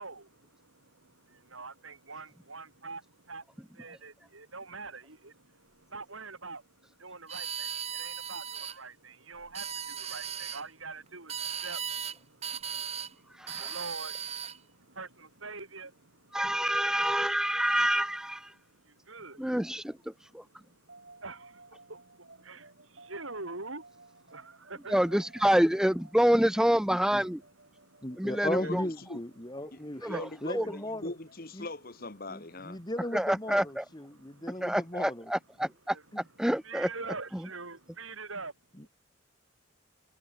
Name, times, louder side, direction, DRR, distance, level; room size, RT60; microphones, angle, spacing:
voice 1, 0.0-16.4 18.5-19.7 20.1-25.2 27.7-28.3 29.7-30.2 32.8-32.9 34.1-34.7 35.9-36.0 36.6-38.5, right 3 dB, 80° right, 6.6 m, -45 dB
sound 1, 7.3-8.8 9.4-10.6 11.3-12.2 12.4-13.1 13.5-14.6, right 8 dB, 30° right, 2.7 m, -37 dB
voice 2, 13.4-13.7 16.3-18.5 19.4-20.0 20.3-20.4 24.9-27.4 28.2-28.8 30.0-30.7 33.1-33.8 34.6-36.9 37.3-37.4, equal, 5° right, 0.5 m, -27 dB
sound 2, 20.9-31.1, right 3 dB, 55° right, 5.9 m, -56 dB
voice 3, 26.9-27.2 28.0-30.1 30.4-31.1 31.5-31.7 32.3-35.3 38.8-38.9, left 1 dB, 20° left, 1.8 m, -37 dB
voice 4, 28.3-29.2 29.7-32.8, left 2 dB, 45° left, 1.6 m, -41 dB
head